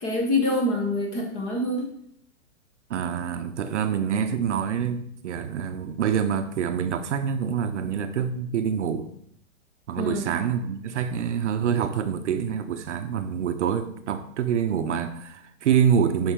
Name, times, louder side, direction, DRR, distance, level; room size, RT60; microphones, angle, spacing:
voice 1, 0.0-1.9 10.0-10.3, left 1 dB, 15° left, 1 dB, 1.0 m, -25 dB
voice 2, 2.9-9.1 9.9-16.3, right 8 dB, 60° right, 9 dB, 0.8 m, -26 dB
9.9 x 5.6 x 3.7 m, 0.69 s
hypercardioid pair, 165°, 41 cm